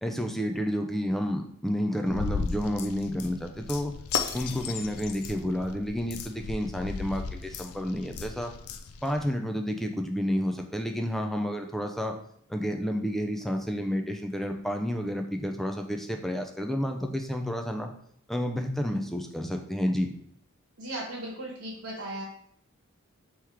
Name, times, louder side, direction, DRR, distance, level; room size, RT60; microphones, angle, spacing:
voice 1, 0.0-3.9 4.3-8.5 9.0-12.2 12.5-17.9 18.3-20.1, equal, ahead, 4 dB, 0.3 m, -30 dB
sound 1, 2.1-9.3, left 5 dB, 85° left, 0.4 m, -35 dB
voice 2, 20.8-22.2, right 1 dB, 75° right, -2 dB, 1.1 m, -37 dB
3.5 x 3.0 x 4.6 m, 0.66 s
head